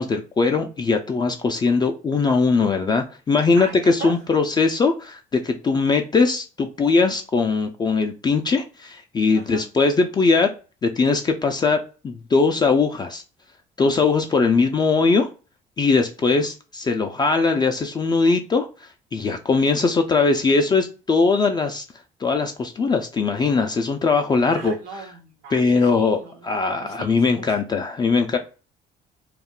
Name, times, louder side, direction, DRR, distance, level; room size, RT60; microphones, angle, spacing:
voice 1, 0.0-10.5 10.8-13.2 13.8-15.3 15.8-21.8 22.2-24.8 25.5-28.4, left 4 dB, 25° left, 0.3 m, -20 dB
voice 2, 3.5-4.2 9.3-9.6 16.2-16.4 24.5-26.5 26.8-27.6, right 4 dB, 90° right, 0.8 m, -38 dB
2.3 x 2.1 x 3.6 m
cardioid pair, 110°, 17 cm